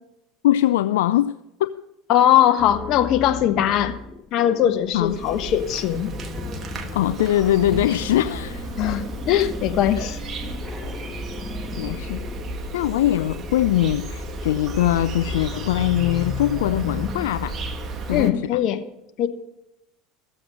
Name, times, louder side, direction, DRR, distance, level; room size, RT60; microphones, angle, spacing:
voice 1, 0.4-1.3 1.7-1.8 4.9-5.2 6.9-8.8 11.8-12.2 12.7-17.6 18.1-18.6, left 12 dB, 80° left, 13 dB, 0.3 m, -22 dB
voice 2, 2.1-4.0 4.3-6.1 8.8-10.2 18.1-18.8 19.2-19.3, left 11 dB, 55° left, 9 dB, 1.2 m, -20 dB
sound 1, 2.6-18.2, left 6 dB, 30° left, 0.9 m, -36 dB
Insect, 5.0-18.3, right 3 dB, 35° right, 1.6 m, -34 dB
14.5 x 7.8 x 6.3 m, 0.86 s
hypercardioid pair, 85°, 0 cm